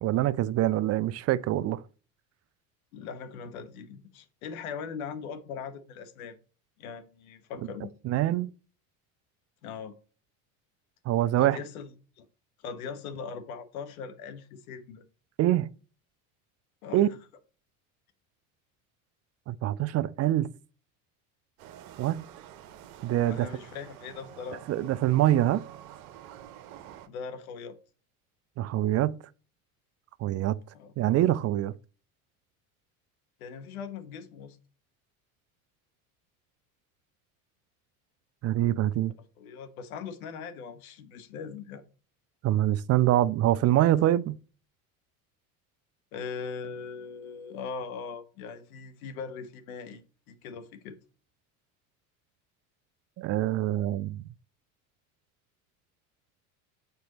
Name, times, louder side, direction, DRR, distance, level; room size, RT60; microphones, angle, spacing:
voice 1, 0.0-1.8 8.0-8.5 11.1-11.6 15.4-15.7 16.9-17.1 19.5-20.5 22.0-22.2 23.0-23.5 24.7-25.6 28.6-29.2 30.2-30.6 31.0-31.7 38.4-39.1 42.4-44.4 53.2-54.2, right 13 dB, 40° right, 0.4 m, -25 dB
voice 2, 2.9-6.4 6.8-7.9 9.6-9.9 11.4-11.9 12.2-12.3 12.6-15.0 16.8-17.0 23.3-24.6 27.1-27.8 30.7-30.9 33.4-34.6 39.4-41.8 46.1-51.0, left 6 dB, 85° left, 1.2 m, -40 dB
sound 1, 21.6-27.1, right 11 dB, 80° right, 0.9 m, -48 dB
6.9 x 4.4 x 4.0 m
hypercardioid pair, 85°, 42 cm